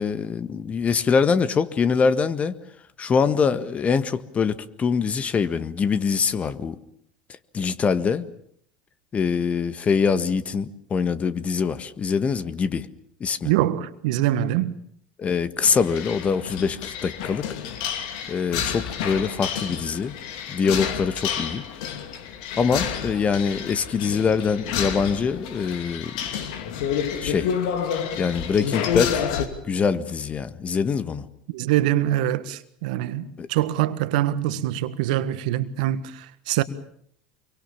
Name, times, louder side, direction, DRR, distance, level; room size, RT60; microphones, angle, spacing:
voice 1, 0.0-2.5 3.0-6.8 7.5-8.3 9.1-12.9 13.2-13.5 15.2-17.5 18.3-20.1 20.5-21.6 22.6-26.1 27.2-27.5 28.2-29.2 29.7-31.2 33.4-33.5, left 5 dB, 30° left, 1.7 m, -24 dB
voice 2, 13.4-14.7 31.5-36.6, right 13 dB, 70° right, 1.6 m, -24 dB
sound 1, 15.6-29.5, left 8 dB, 70° left, 2.8 m, -29 dB
26.0 x 24.0 x 7.3 m
hypercardioid pair, 85°, 4 cm